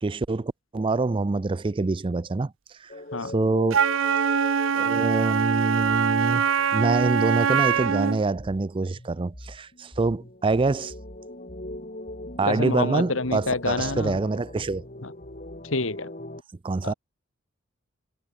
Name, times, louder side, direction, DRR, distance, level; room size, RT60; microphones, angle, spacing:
voice 1, 0.0-2.5 2.8-2.9 3.3-3.8 4.7-6.4 6.7-10.9 12.4-14.9 16.6-16.9, right 3 dB, 25° right, 0.4 m, -25 dB
sound 1, 2.9-8.6 8.9-16.4, left 1 dB, 40° left, 5.9 m, -41 dB
Wind instrument woodwind instrument, 3.7-8.2, right 6 dB, 80° right, 0.6 m, -23 dB
voice 2, 12.5-14.2 15.0-15.1 15.6-16.1 16.8-16.9, left 3 dB, 85° left, 2.2 m, -27 dB
head